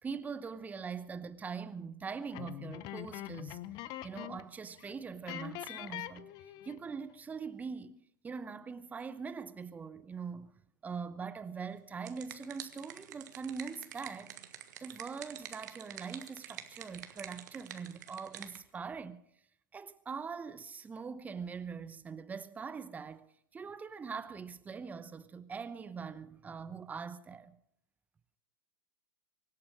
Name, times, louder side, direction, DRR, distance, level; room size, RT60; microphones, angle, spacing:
voice 1, 0.0-3.6 4.0-6.3 6.6-19.2 19.7-23.3 23.5-27.6, right 5 dB, 15° right, 0.8 m, -42 dB
sound 1, 2.3-4.5 4.8-4.9 5.3-6.9, left 14 dB, 40° left, 0.8 m, -43 dB
sound 2, 11.7-18.6, right 11 dB, 60° right, 1.5 m, -48 dB
24.0 x 8.7 x 6.4 m
figure-of-eight pair, 95°, 11 cm